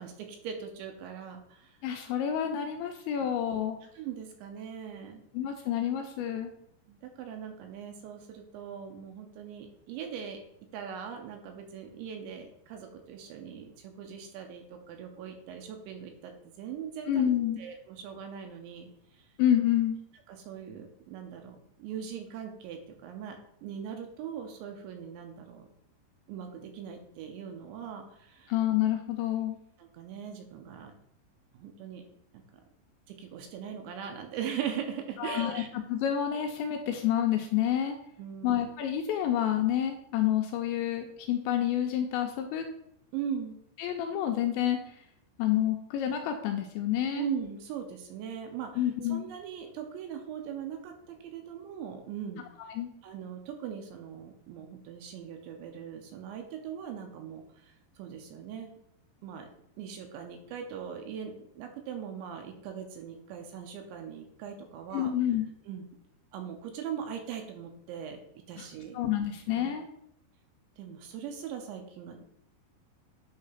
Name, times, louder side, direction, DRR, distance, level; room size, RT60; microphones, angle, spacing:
voice 1, 0.0-1.8 3.9-5.2 6.9-10.4 10.7-16.3 16.6-17.3 17.6-19.3 20.3-25.7 26.3-28.5 29.8-30.9 31.5-32.1 33.1-35.7 38.2-38.6 43.1-43.5 47.1-52.4 53.0-58.7 59.2-59.5 59.8-65.1 65.7-65.9 66.3-68.2 68.5-69.0 69.6-69.7 70.8-72.2, right 8 dB, 80° right, 4 dB, 2.9 m, -40 dB
voice 2, 1.8-3.8 5.3-6.5 17.1-17.6 19.4-20.0 28.5-29.6 35.2-35.6 35.9-38.0 38.4-42.7 43.8-45.0 45.4-47.2 48.8-49.3 52.6-52.9 64.9-65.5 68.6-68.7 68.9-69.8, left 10 dB, 80° left, 4 dB, 2.7 m, -28 dB
9.7 x 3.3 x 5.7 m, 0.75 s
omnidirectional pair, 5.7 m